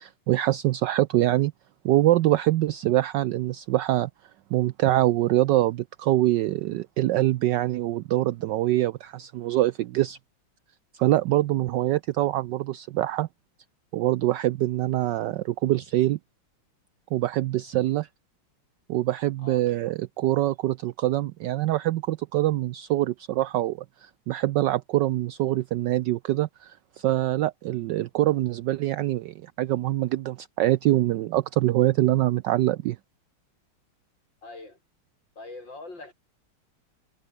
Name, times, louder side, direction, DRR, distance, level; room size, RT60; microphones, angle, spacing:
voice 1, 0.0-1.5 1.8-4.1 4.5-10.2 10.9-13.3 13.9-16.2 17.1-18.1 18.9-33.0, right 15 dB, 75° right, 1.0 m, -24 dB
voice 2, 34.4-34.8 35.4-36.1, left 2 dB, 55° left, 6.7 m, -42 dB
omnidirectional pair, 2.4 m